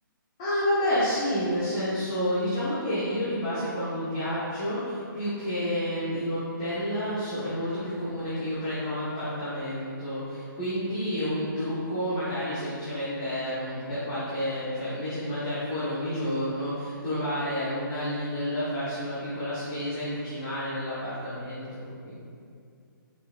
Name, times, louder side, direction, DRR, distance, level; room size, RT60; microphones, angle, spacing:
voice 1, 0.4-22.1, equal, 15° left, -12 dB, 1.1 m, -30 dB
8.5 x 5.9 x 2.5 m, 2.3 s
hypercardioid pair, 180°, 11 cm